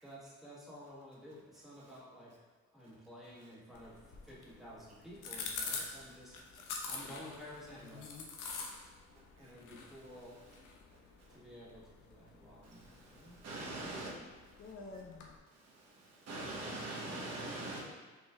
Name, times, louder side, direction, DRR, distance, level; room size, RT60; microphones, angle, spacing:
voice 1, 0.0-2.3 2.7-4.0 4.2-6.4 6.9-8.1 9.4-10.4 11.3-13.4, equal, ahead, -7 dB, 1.3 m, -52 dB
sound 1, 3.7-15.4, left 4 dB, 90° left, 0.6 m, -47 dB
voice 2, 7.8-8.4 13.9-14.3 14.6-15.4, left 4 dB, 45° left, 2 dB, 0.5 m, -51 dB
voice 3, 12.6-14.1 15.6-17.8, right 2 dB, 55° right, -3 dB, 1.0 m, -43 dB
5.3 x 3.0 x 2.4 m, 1.4 s
cardioid pair, 90°, 30 cm